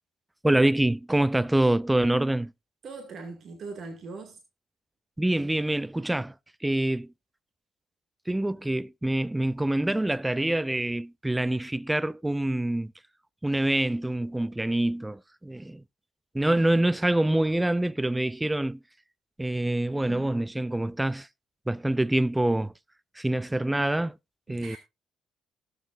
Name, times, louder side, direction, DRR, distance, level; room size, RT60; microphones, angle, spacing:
voice 1, 0.4-2.5 5.2-6.3 6.6-7.1 8.3-12.9 13.4-15.8 16.3-18.8 19.4-21.3 21.7-22.7 23.2-24.2 24.5-24.8, right 1 dB, 10° right, 0.4 m, -25 dB
voice 2, 2.8-4.4 20.1-20.3 24.5-24.8, right 4 dB, 55° right, 2.2 m, -41 dB
19.0 x 7.3 x 2.6 m
hypercardioid pair, 45°, 0 cm